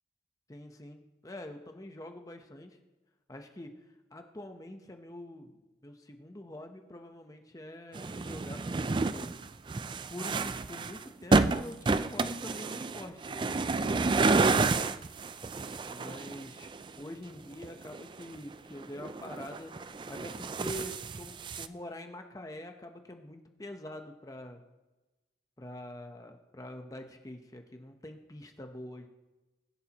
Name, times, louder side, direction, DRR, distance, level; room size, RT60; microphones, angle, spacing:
voice 1, 0.5-2.8 3.3-3.7 4.1-9.4 10.1-14.9 15.9-16.7 16.9-24.6 25.6-29.1, left 1 dB, 20° left, 5 dB, 0.8 m, -45 dB
sound 1, 7.9-17.0 17.6-18.5 18.8-21.7, right 3 dB, 25° right, 0.3 m, -30 dB
21.0 x 11.0 x 3.0 m, 1.1 s
head